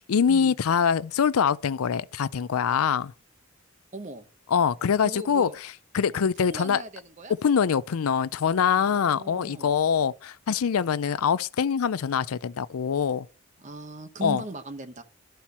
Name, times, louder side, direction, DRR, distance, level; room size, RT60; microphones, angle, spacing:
voice 1, 0.1-3.1 4.5-6.8 7.4-13.3 14.2-14.4, left 7 dB, 85° left, 0.4 m, -24 dB
voice 2, 3.9-4.3 5.0-5.6 6.1-7.3 8.7-9.8 13.6-15.0, right 2 dB, 35° right, 0.9 m, -39 dB
12.5 x 4.4 x 5.5 m
head